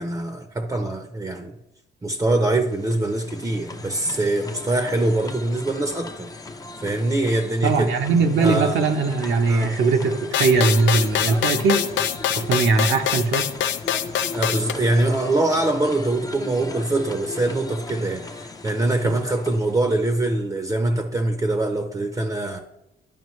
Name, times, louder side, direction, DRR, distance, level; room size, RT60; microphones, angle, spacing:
voice 1, 0.0-1.6 2.0-6.3 6.8-7.9 8.4-8.8 9.5-9.7 14.3-22.6, right 2 dB, 20° right, 6 dB, 0.7 m, -23 dB
sound 1, 2.5-20.4, left 3 dB, 20° left, 0.6 m, -38 dB
voice 2, 7.6-11.8 12.3-13.5 19.0-19.1, right 4 dB, 70° right, 3 dB, 0.9 m, -20 dB
sound 2, 10.3-14.7, left 10 dB, 70° left, 0.5 m, -24 dB
11.0 x 5.1 x 3.1 m, 0.88 s
cardioid pair, 90°, 20 cm